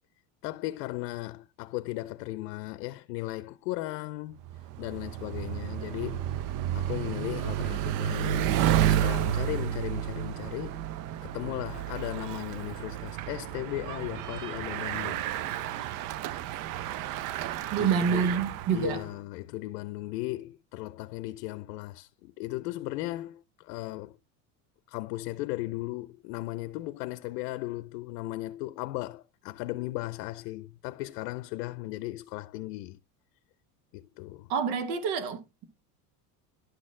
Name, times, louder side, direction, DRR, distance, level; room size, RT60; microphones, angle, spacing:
voice 1, 0.4-4.4 4.8-6.3 6.7-8.6 8.9-10.8 11.2-15.2 17.8-18.4 18.7-24.1 24.9-33.0 33.9-34.5, left 18 dB, 80° left, 0.7 m, -36 dB
Bicycle, 4.4-19.1, right 11 dB, 45° right, 0.5 m, -31 dB
voice 2, 17.7-19.0 34.5-35.6, right 6 dB, 65° right, 1.4 m, -27 dB
11.5 x 4.2 x 3.7 m
supercardioid pair, 130°, 47 cm